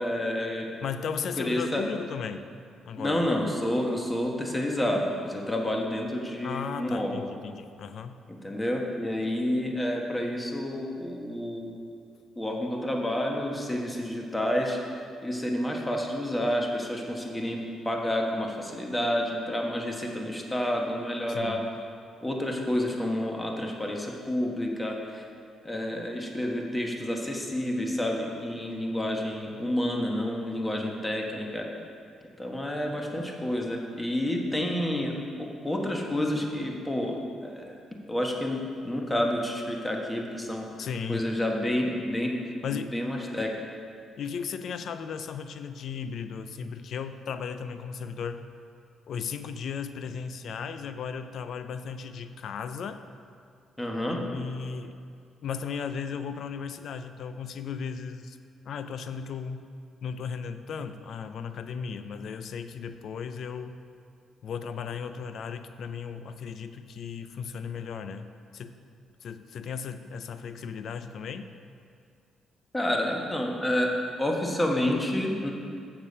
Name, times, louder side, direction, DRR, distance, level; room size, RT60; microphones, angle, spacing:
voice 1, 0.0-0.7 1.4-1.8 3.0-7.2 8.4-11.7 12.4-14.8 15.2-17.6 17.8-21.6 22.2-25.2 25.6-31.7 32.4-37.8 38.1-38.6 38.8-40.7 41.1-42.3 42.7-43.5 53.8-54.2 72.7-73.9 74.2-75.5, left 1 dB, 15° left, 0 dB, 1.2 m, -29 dB
voice 2, 0.8-2.5 2.9-3.2 6.4-8.2 21.3-21.7 40.8-41.3 42.6-42.9 44.2-48.4 49.1-53.0 54.0-55.0 55.4-58.4 58.6-59.7 60.0-63.8 64.4-68.8 69.2-71.5, left 6 dB, 65° left, 10 dB, 0.5 m, -36 dB
7.3 x 6.7 x 5.4 m, 2.3 s
cardioid pair, 90°, 0 cm